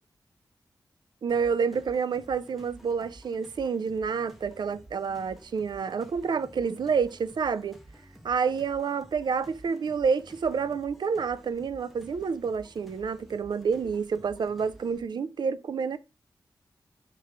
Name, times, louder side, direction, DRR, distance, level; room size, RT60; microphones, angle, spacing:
voice 1, 1.2-7.8 8.2-16.0, right 6 dB, 65° right, 0.4 m, -28 dB
sound 1, 1.3-15.0, right 1 dB, ahead, 0.6 m, -52 dB
3.6 x 3.1 x 3.2 m
cardioid pair, 70°, 8 cm